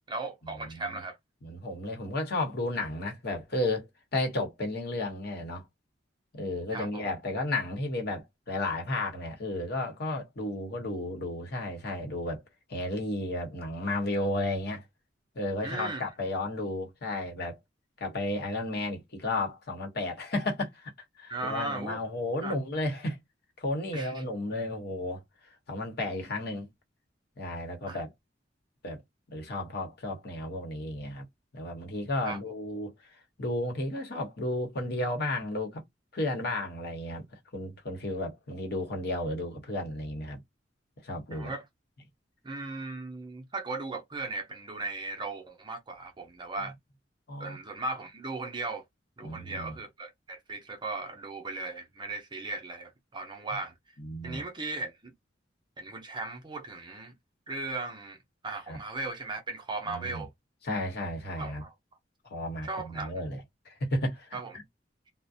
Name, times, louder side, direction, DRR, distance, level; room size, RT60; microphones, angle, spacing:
voice 1, 0.1-1.2 6.7-7.1 15.6-16.1 21.3-22.0 22.4-22.5 23.9-24.2 27.9-28.0 32.2-32.4 41.3-41.6 42.4-46.7 47.4-48.8 49.2-53.7 54.2-55.1 55.8-57.1 57.5-58.2 58.4-60.3 61.4-61.7 62.6-63.1 64.3-64.5, right 3 dB, 25° right, 0.6 m, -37 dB
voice 2, 0.6-1.0 1.4-3.9 4.1-5.7 6.3-12.4 12.7-14.8 15.3-17.6 18.0-20.9 21.2-23.2 23.6-25.2 25.7-26.7 27.4-28.1 28.8-29.0 29.3-31.2 31.5-32.9 33.4-35.8 36.1-37.2 37.5-40.4 41.0-41.5 47.3-47.6 49.2-49.8 54.0-54.4 58.7-58.8 59.9-60.2 60.6-61.6 62.2-64.3, left 1 dB, 60° left, 0.9 m, -33 dB
2.4 x 2.0 x 2.6 m
head